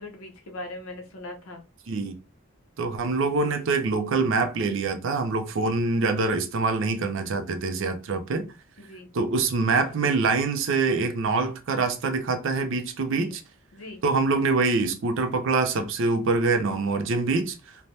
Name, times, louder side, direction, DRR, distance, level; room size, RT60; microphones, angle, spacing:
voice 1, 0.0-1.6 5.6-5.8 8.8-9.1 13.1-13.3 13.7-14.0, left 2 dB, 75° left, 0.8 m, -40 dB
voice 2, 2.8-8.4 9.1-13.4 14.0-17.6, right 3 dB, 60° right, 0.5 m, -25 dB
3.2 x 2.1 x 2.6 m
head